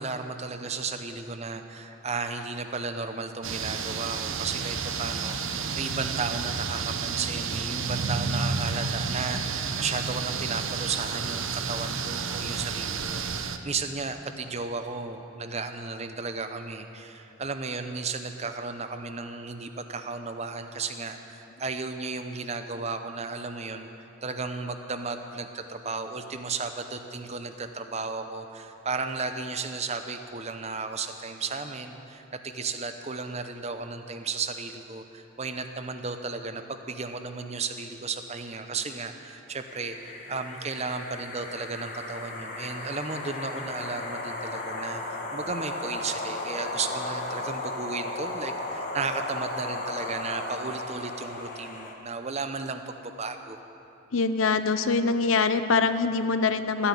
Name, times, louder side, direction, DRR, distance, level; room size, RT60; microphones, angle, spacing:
voice 1, 0.0-23.9 24.2-53.6, right 4 dB, 30° right, 7 dB, 0.7 m, -34 dB
sound 1, 3.4-13.6, right 5 dB, 70° right, 0.8 m, -31 dB
sound 2, 39.7-51.9, left 2 dB, 40° left, 1.5 m, -35 dB
voice 2, 54.1-56.9, left 4 dB, 75° left, 10 dB, 0.7 m, -24 dB
14.0 x 10.0 x 8.4 m, 3.0 s
head